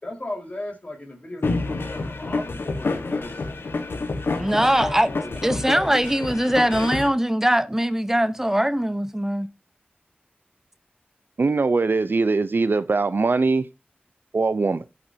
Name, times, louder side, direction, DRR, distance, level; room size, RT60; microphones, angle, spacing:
voice 1, 0.0-3.4 4.6-5.9, left 1 dB, 40° left, 4.2 m, -36 dB
sound 1, 1.4-7.1, left 3 dB, 80° left, 1.3 m, -28 dB
voice 2, 4.4-5.1 5.4-9.5, equal, 10° right, 0.8 m, -21 dB
voice 3, 11.4-13.7 14.3-14.8, right 3 dB, 65° right, 0.6 m, -21 dB
17.0 x 6.0 x 2.7 m
cardioid pair, 40°, 4 cm